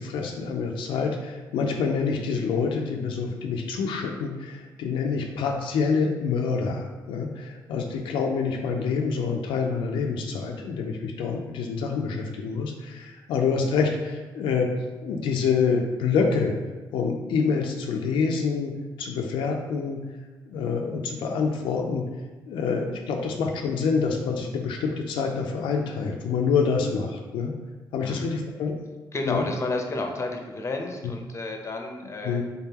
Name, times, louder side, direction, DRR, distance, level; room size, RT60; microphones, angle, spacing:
voice 1, 0.0-14.7 15.0-16.5 16.9-18.7 19.0-20.0 20.5-22.0 22.5-27.5 27.9-28.8 29.3-29.4 32.2-32.4, left 5 dB, 90° left, 1 dB, 0.4 m, -26 dB
voice 2, 29.1-32.4, left 2 dB, 35° left, 3 dB, 0.7 m, -31 dB
3.7 x 3.5 x 2.8 m, 1.2 s
cardioid pair, 80°, 8 cm